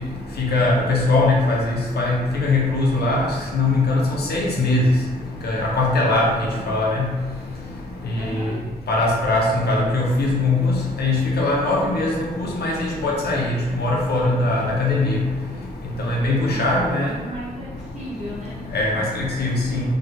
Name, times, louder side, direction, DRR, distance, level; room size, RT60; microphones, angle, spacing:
voice 1, 0.4-1.6 2.0-3.3 3.5-4.0 4.3-4.9 5.4-6.3 6.7-7.1 8.9-12.1 12.4-15.2 16.0-17.1 18.7-19.8, left 2 dB, 85° left, -3 dB, 0.6 m, -20 dB
voice 2, 8.2-8.6 16.5-18.6, equal, 45° right, -8 dB, 1.3 m, -35 dB
2.5 x 2.3 x 2.8 m, 1.3 s
cardioid pair, 50°, 16 cm